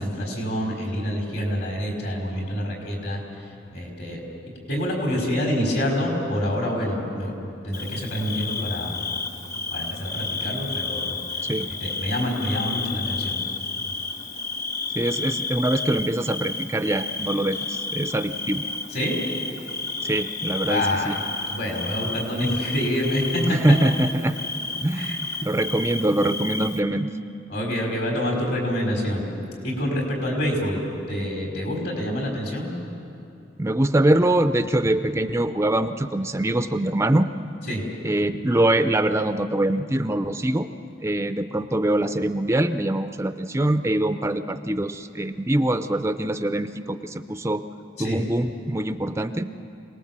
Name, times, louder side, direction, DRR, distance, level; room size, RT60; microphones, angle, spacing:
voice 1, 0.0-3.2 3.7-4.2 4.7-9.0 9.7-11.2 11.8-13.4 18.9-19.2 20.7-21.2 21.5-23.8 24.9-25.2 27.5-29.3 29.6-30.8 31.1-32.7 37.7-37.8 48.0-48.2, equal, 65° left, 0 dB, 5.2 m, -27 dB
Bird / Cricket, 7.7-26.8, left 3 dB, 45° left, 1.6 m, -31 dB
voice 2, 15.0-18.6 20.0-21.1 23.4-24.4 24.8-27.1 33.6-37.3 38.0-40.7 41.0-47.6 48.0-49.5, right 1 dB, 15° right, 9 dB, 0.5 m, -23 dB
26.5 x 19.0 x 7.5 m, 2.8 s
head